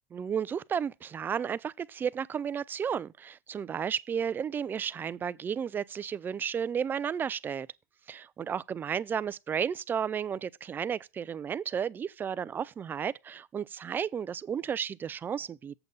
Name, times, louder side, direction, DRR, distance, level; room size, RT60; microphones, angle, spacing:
voice 1, 0.1-7.7 8.1-15.7, right 7 dB, 20° right, 0.4 m, -33 dB
8.0 x 7.2 x 4.0 m
supercardioid pair, 130°, 10 cm